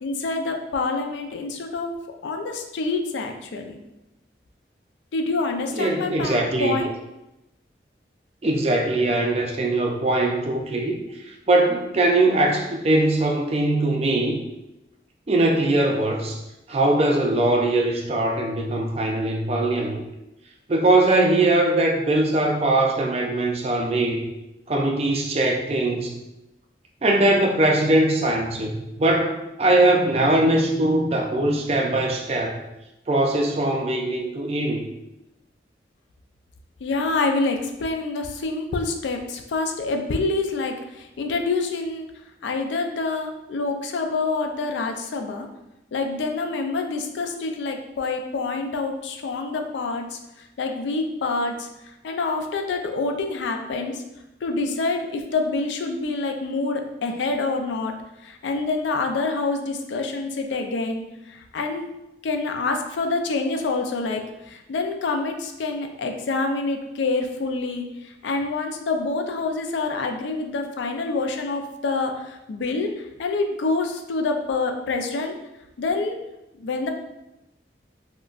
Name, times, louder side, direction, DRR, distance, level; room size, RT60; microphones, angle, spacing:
voice 1, 0.0-1.9 2.2-3.7 5.1-6.9 36.8-42.1 42.4-45.5 45.9-50.2 50.6-51.7 52.0-54.0 54.4-57.9 58.2-61.0 61.3-61.9 62.2-64.2 64.5-67.9 68.2-72.9 73.2-75.3 75.8-76.2 76.6-76.9, left 3 dB, 85° left, 4 dB, 0.4 m, -26 dB
voice 2, 5.7-6.8 8.4-14.4 15.3-16.4 16.7-20.0 20.7-24.3 24.7-26.2 27.0-32.6 33.1-34.9, right 2 dB, 35° right, 1 dB, 0.3 m, -21 dB
3.7 x 2.1 x 2.3 m, 0.92 s
head